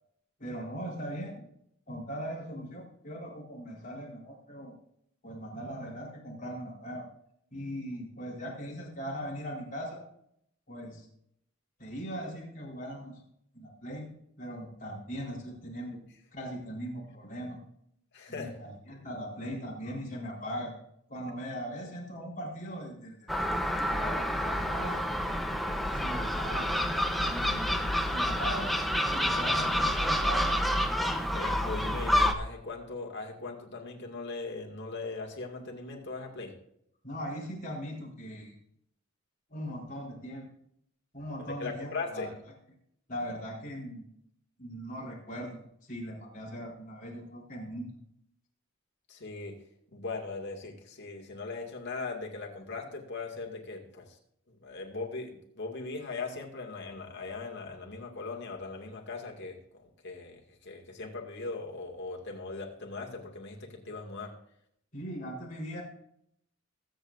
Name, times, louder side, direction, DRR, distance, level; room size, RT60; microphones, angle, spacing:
voice 1, 0.4-1.3 1.9-4.7 5.2-7.1 7.5-10.0 10.7-11.1 11.8-13.2 13.5-14.1 14.4-16.0 16.3-17.6 18.3-20.7 21.1-25.0 25.9-26.7 27.2-28.7 29.1-30.6 37.0-38.6 39.5-40.5 41.1-42.3 43.1-44.0 44.6-47.9 64.9-65.8, equal, 40° left, -4 dB, 4.1 m, -39 dB
voice 2, 18.1-18.5 31.3-36.5 41.4-42.3 49.1-49.6 49.9-54.2 54.5-59.6 59.8-64.3, left 3 dB, 60° left, 1 dB, 2.3 m, -39 dB
Gull seagull, 23.3-32.3, equal, ahead, 0.8 m, -28 dB
21.5 x 8.1 x 2.6 m, 0.72 s
head